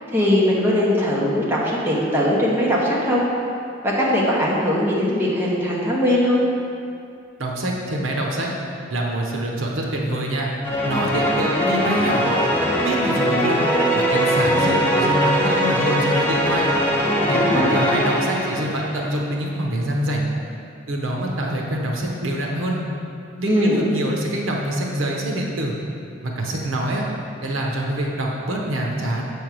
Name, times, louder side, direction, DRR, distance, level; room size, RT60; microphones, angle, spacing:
voice 1, 0.1-3.2 3.8-6.4 17.3-17.7 23.5-23.8, left 1 dB, 10° right, -6 dB, 1.0 m, -20 dB
voice 2, 7.4-8.5 8.9-10.5 10.8-12.4 12.8-13.7 13.9-16.7 17.3-20.3 20.9-22.8 23.4-25.7 26.2-27.1 27.4-29.2, right 1 dB, 80° right, -1 dB, 0.9 m, -25 dB
sound 1, 10.6-19.2, equal, 10° left, 0.8 m, -21 dB
7.0 x 3.5 x 6.1 m, 2.5 s
head